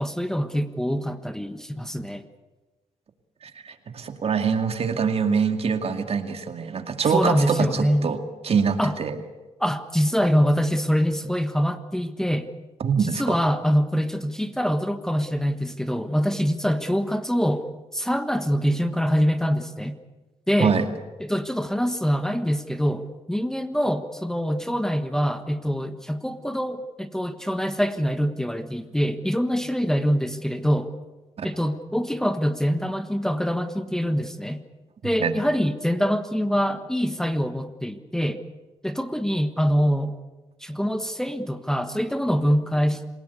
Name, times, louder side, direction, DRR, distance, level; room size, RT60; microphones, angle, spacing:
voice 1, 0.0-2.2 7.1-8.1 8.8-8.9 9.6-12.5 13.0-20.0 20.5-20.7 21.2-30.9 31.4-34.6 35.0-38.4 38.8-40.1 40.6-43.1, equal, 5° left, 9 dB, 1.4 m, -24 dB
voice 2, 3.4-8.2 8.4-9.2 12.8-13.2 20.6-20.9 31.4-31.5 35.2-35.4, right 6 dB, 55° right, 6 dB, 2.3 m, -24 dB
27.5 x 17.0 x 8.3 m, 1.2 s
cardioid pair, 80°, 12 cm